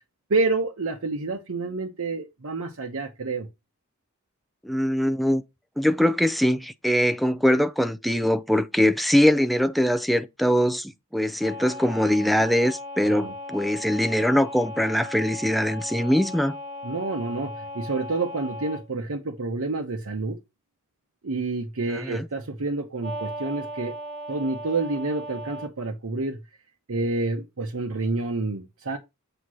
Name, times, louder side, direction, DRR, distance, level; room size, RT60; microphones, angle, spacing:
voice 1, 0.3-3.5 13.1-13.3 16.8-20.4 21.2-23.9 24.3-26.4 26.9-29.0, right 3 dB, 70° right, 0.9 m, -28 dB
voice 2, 4.6-5.4 5.8-16.6 21.9-22.3, equal, ahead, 0.4 m, -22 dB
sound 1, 11.4-18.8 23.0-25.7, left 1 dB, 35° right, 1.6 m, -37 dB
7.9 x 2.9 x 6.2 m
head